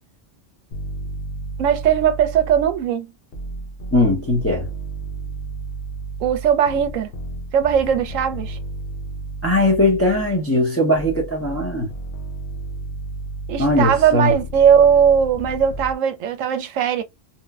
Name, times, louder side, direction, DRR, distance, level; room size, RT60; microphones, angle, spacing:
sound 1, 0.7-2.9 3.3-10.4 10.9-15.9, right 2 dB, 55° left, 0.7 m, -32 dB
voice 1, 1.6-3.1 6.2-7.1 7.5-8.6 13.5-17.0, right 8 dB, 80° right, 1.0 m, -18 dB
voice 2, 3.9-4.7 9.4-11.9 13.6-14.3, left 1 dB, 15° left, 0.6 m, -19 dB
3.1 x 2.1 x 2.3 m
omnidirectional pair, 1.3 m